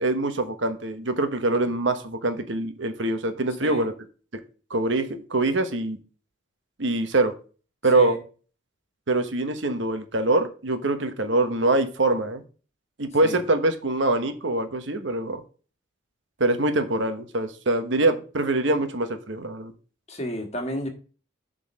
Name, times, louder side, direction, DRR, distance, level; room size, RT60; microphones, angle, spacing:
voice 1, 0.0-3.9 4.7-6.0 6.8-7.3 7.8-8.2 9.1-12.4 13.0-15.4 16.4-19.7, right 2 dB, 65° right, 1.0 m, -24 dB
voice 2, 20.1-20.9, equal, 30° left, 1.6 m, -31 dB
7.6 x 4.0 x 6.4 m
head